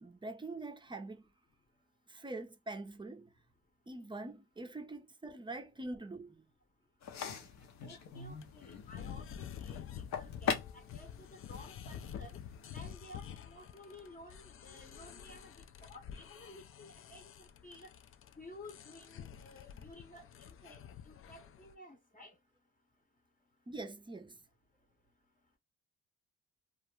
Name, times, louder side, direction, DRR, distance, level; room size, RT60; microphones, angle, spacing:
voice 1, 0.0-1.3 2.1-3.3 3.9-6.5 7.4-7.5 23.7-24.4, right 2 dB, 15° right, 0.5 m, -44 dB
sound 1, 7.0-12.9, left 7 dB, 65° left, 0.8 m, -42 dB
sound 2, 7.1-21.7, left 9 dB, 45° left, 0.4 m, -49 dB
voice 2, 7.8-9.8 10.2-12.4 12.7-17.9 18.4-22.3, left 1 dB, 25° left, 0.8 m, -54 dB
2.4 x 2.1 x 3.0 m
cardioid pair, 90°, 30 cm